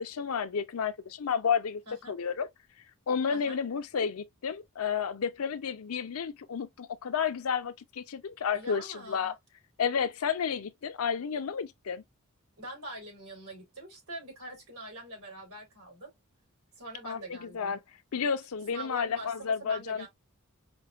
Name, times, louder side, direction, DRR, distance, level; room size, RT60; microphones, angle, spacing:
voice 1, 0.0-1.8 2.1-2.5 3.1-9.3 9.8-12.0 17.0-17.8 18.1-20.1, left 6 dB, 75° left, 0.5 m, -31 dB
voice 2, 8.5-9.3 12.6-16.1 16.8-17.8 18.7-20.1, right 1 dB, 85° right, 3.1 m, -44 dB
5.3 x 2.3 x 2.3 m
head